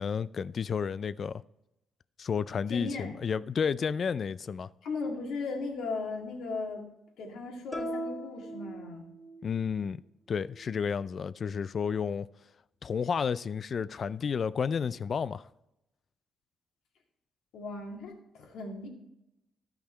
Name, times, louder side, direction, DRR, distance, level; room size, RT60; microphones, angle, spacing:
voice 1, 0.0-1.4 2.2-4.7 9.4-10.0 10.3-12.3 12.8-15.5, left 6 dB, 50° left, 0.3 m, -31 dB
voice 2, 2.7-3.2 4.8-6.8 7.2-9.1 17.5-18.9, left 3 dB, 80° left, 2.1 m, -37 dB
sound 1, 7.7-9.5, right 1 dB, 15° left, 1.5 m, -38 dB
12.5 x 5.7 x 4.4 m
cardioid pair, 90°, 0 cm